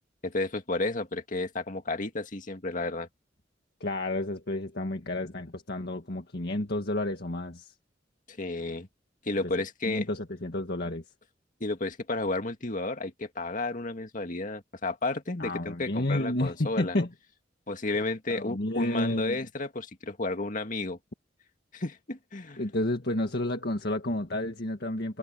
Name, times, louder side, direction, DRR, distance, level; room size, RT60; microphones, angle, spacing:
voice 1, 0.2-3.1 8.3-8.9 9.3-10.0 11.6-17.0 17.7-21.0 21.7-22.6, left 2 dB, 45° left, 2.1 m, -32 dB
voice 2, 3.8-7.7 9.9-11.0 15.4-17.1 18.3-19.4 22.6-25.2, left 1 dB, 65° left, 1.9 m, -30 dB
head